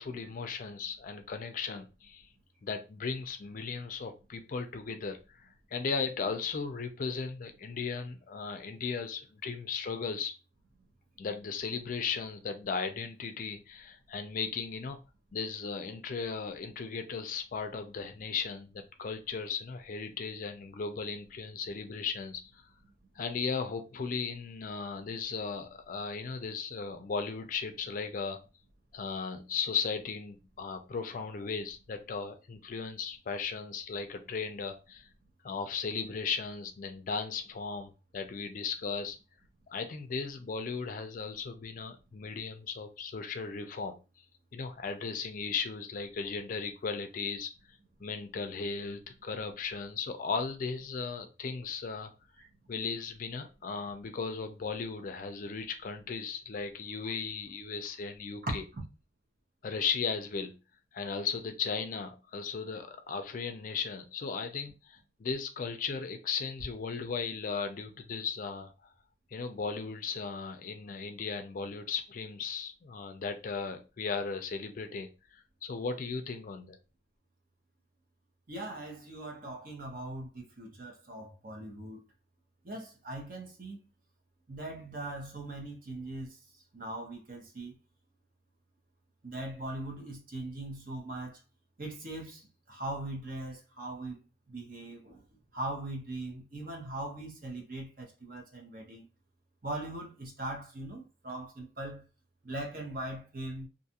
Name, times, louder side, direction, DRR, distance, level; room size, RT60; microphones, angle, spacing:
voice 1, 0.0-2.3 2.6-10.3 11.2-15.0 15.3-22.6 23.2-28.4 28.9-35.1 35.4-39.2 39.7-44.0 44.5-47.5 48.0-52.1 52.7-58.6 59.6-60.5 60.9-68.7 69.3-76.8, left 5 dB, 45° left, 0.4 m, -36 dB
voice 2, 78.5-82.0 82.6-83.8 84.5-86.4 86.7-87.7 89.2-91.4 91.8-94.1 94.5-95.2 95.5-99.0 99.6-102.0 102.4-103.7, right 1 dB, 50° right, 0.8 m, -40 dB
2.5 x 2.4 x 2.8 m
head